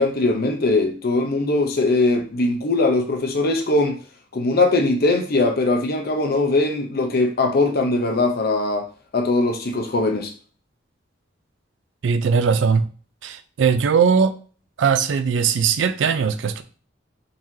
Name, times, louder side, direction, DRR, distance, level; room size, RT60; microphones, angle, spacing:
voice 1, 0.0-4.0 4.3-8.8 9.1-10.3, left 2 dB, 55° left, 0.6 m, -20 dB
voice 2, 12.0-12.9 13.2-14.3 14.8-16.6, right 6 dB, 70° right, 0.4 m, -19 dB
3.8 x 3.1 x 2.7 m
head